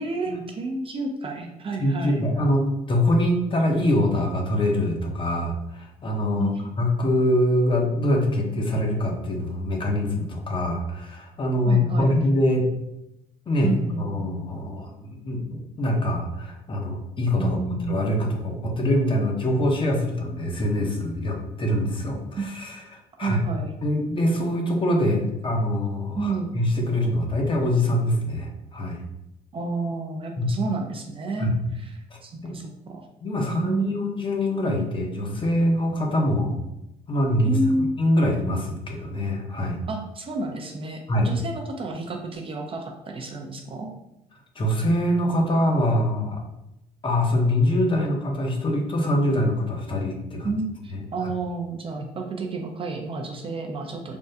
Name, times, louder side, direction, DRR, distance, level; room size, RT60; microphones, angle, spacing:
voice 1, 0.0-2.2 6.4-6.7 11.6-12.2 13.6-14.3 17.4-18.1 22.3-22.4 23.2-23.7 26.2-26.5 29.5-31.5 31.7-31.9 32.2-33.1 33.4-33.9 37.4-37.9 39.9-43.9 50.4-54.2, right 3 dB, 35° right, 2 dB, 0.4 m, -30 dB
voice 2, 1.8-12.7 13.5-17.6 17.8-23.4 23.8-29.0 30.4-30.6 31.4-31.6 32.4-32.6 33.2-36.6 37.1-37.6 38.0-39.8 41.1-41.3 44.6-46.4 47.0-50.5 50.9-51.0, left 1 dB, 30° left, 1 dB, 0.6 m, -24 dB
3.5 x 2.2 x 2.6 m, 0.88 s
cardioid pair, 110°, 17 cm